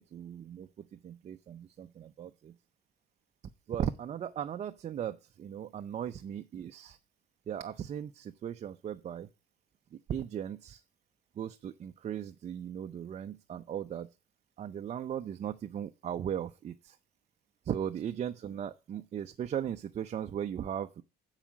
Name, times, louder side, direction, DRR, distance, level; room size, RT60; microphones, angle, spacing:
voice 1, 0.0-2.5 3.7-7.0 7.5-9.3 9.9-10.8 11.4-14.1 14.6-17.0 17.6-21.0, right 9 dB, 40° right, 7 dB, 0.6 m, -37 dB
8.7 x 4.9 x 7.1 m, 0.30 s
cardioid pair, 110°, 17 cm